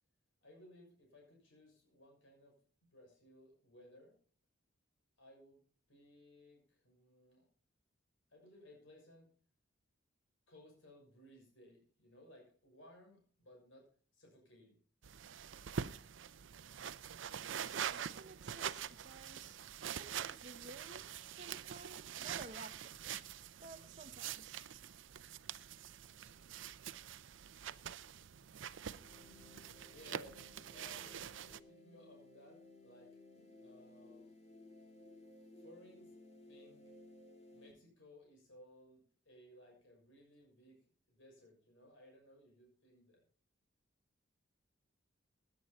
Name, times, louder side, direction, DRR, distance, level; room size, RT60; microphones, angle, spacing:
voice 1, 0.4-2.6 2.8-4.1 5.2-5.6 5.9-7.5 8.3-9.3 10.5-14.8 29.9-30.4 30.7-33.2 33.6-34.3 35.6-36.2 36.5-36.9 37.5-43.2, left 1 dB, 70° left, 6.4 m, -61 dB
sound 1, 15.0-31.6, right 8 dB, 65° right, 0.6 m, -45 dB
voice 2, 17.7-19.6 19.9-23.0 23.6-24.6, right 3 dB, 40° right, 1.1 m, -54 dB
sound 2, 29.0-37.7, left 2 dB, 35° left, 3.1 m, -59 dB
17.0 x 10.5 x 4.2 m
head